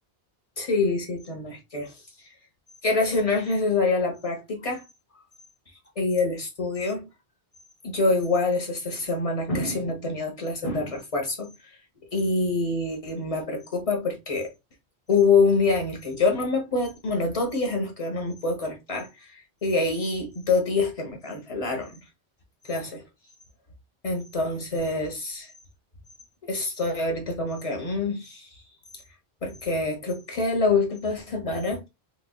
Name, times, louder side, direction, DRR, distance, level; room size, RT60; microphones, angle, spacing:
voice 1, 0.6-1.9 2.8-4.8 6.0-7.1 7.8-11.7 12.1-14.5 15.1-22.0 22.6-23.0 24.0-25.5 26.4-28.5 29.4-31.9, left 3 dB, 35° left, 1.0 m, -26 dB
3.5 x 3.1 x 2.3 m
omnidirectional pair, 1.1 m